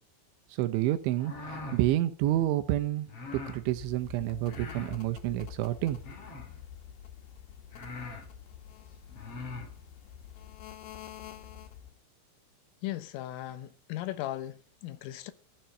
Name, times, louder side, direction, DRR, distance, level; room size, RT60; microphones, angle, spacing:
voice 1, 0.5-3.1 3.3-6.0, right 14 dB, 75° right, 3.2 m, -29 dB
sound 1, 1.1-1.8 3.1-3.6 4.4-5.0 6.0-6.6 7.3-7.4 7.7-8.3 9.1-9.7, left 3 dB, 35° left, 3.2 m, -42 dB
sound 2, 3.6-12.0, left 10 dB, 65° left, 3.7 m, -47 dB
voice 2, 12.8-15.3, left 14 dB, 85° left, 3.6 m, -37 dB
15.0 x 7.3 x 9.1 m
omnidirectional pair, 5.7 m